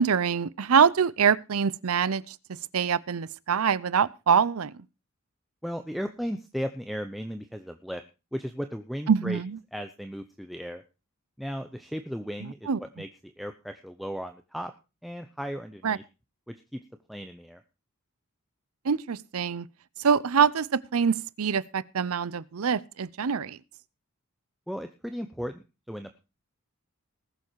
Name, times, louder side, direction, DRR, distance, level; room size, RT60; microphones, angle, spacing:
voice 1, 0.0-2.4 2.7-4.7 9.1-9.6 12.4-12.8 15.8-16.0 18.8-19.7 20.0-23.6, right 6 dB, 85° right, 0.6 m, -24 dB
voice 2, 5.6-8.0 8.3-9.4 9.7-10.8 11.4-14.7 15.0-16.0 16.5-16.8 17.1-17.6 24.7-26.2, equal, ahead, 0.7 m, -36 dB
19.5 x 7.2 x 4.6 m
head